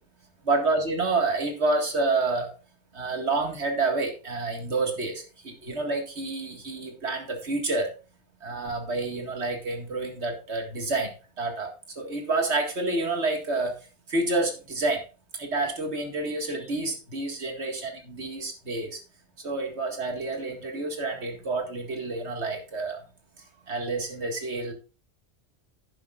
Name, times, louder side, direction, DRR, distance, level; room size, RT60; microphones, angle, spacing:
voice 1, 0.4-2.5 2.9-7.9 8.4-13.8 14.1-15.0 15.3-19.0 19.4-23.0 23.7-24.7, right 3 dB, 75° right, 3 dB, 2.2 m, -28 dB
10.5 x 10.5 x 2.4 m, 0.34 s
omnidirectional pair, 1.1 m